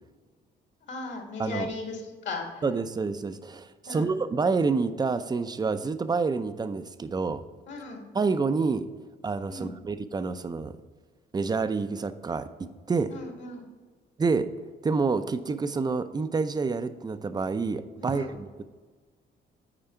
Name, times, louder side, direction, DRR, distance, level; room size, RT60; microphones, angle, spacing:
voice 1, 0.9-2.6 3.9-4.1 7.7-8.0 9.5-9.7 13.1-13.7 18.0-18.3, left 3 dB, 65° left, 1 dB, 2.0 m, -37 dB
voice 2, 1.4-1.7 2.6-7.4 8.1-8.9 9.2-10.8 11.3-13.1 14.2-14.5 14.8-18.6, right 4 dB, 20° right, 11 dB, 0.5 m, -28 dB
8.9 x 4.8 x 4.3 m, 1.4 s
cardioid pair, 90°, 20 cm